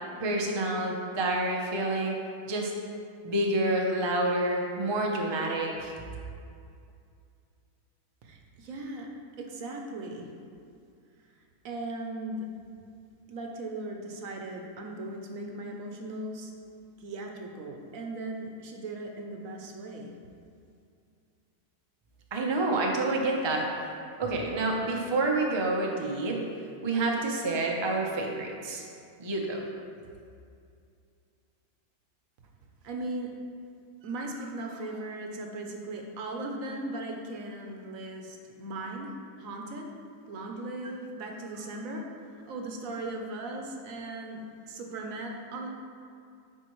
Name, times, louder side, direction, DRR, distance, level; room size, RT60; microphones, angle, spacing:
voice 1, 0.2-2.2 2.5-2.7 3.2-5.9 22.3-23.7 24.2-26.4 26.8-28.9 29.2-29.6, right 2 dB, 45° right, 0 dB, 0.3 m, -28 dB
voice 2, 8.2-9.1 9.4-10.3 11.6-12.5 13.3-16.5 17.0-20.1 32.8-33.3 34.0-39.1 39.4-39.9 40.3-42.1 42.3-45.7, right 2 dB, 65° right, 1 dB, 1.0 m, -38 dB
9.1 x 4.5 x 3.0 m, 2.4 s
omnidirectional pair, 1.6 m